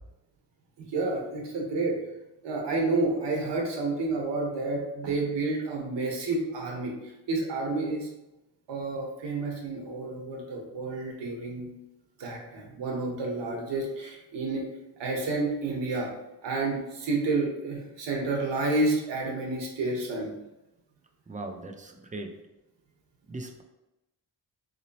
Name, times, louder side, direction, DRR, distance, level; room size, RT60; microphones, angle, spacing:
voice 1, 0.8-2.0 2.4-6.9 7.3-8.1 8.7-11.7 12.2-14.6 15.0-16.1 16.4-20.3, right 2 dB, 85° right, 0 dB, 1.1 m, -30 dB
voice 2, 21.3-22.3 23.3-23.6, right 2 dB, 20° right, 4 dB, 0.4 m, -39 dB
3.8 x 3.0 x 2.8 m, 0.96 s
cardioid pair, 105°, 42 cm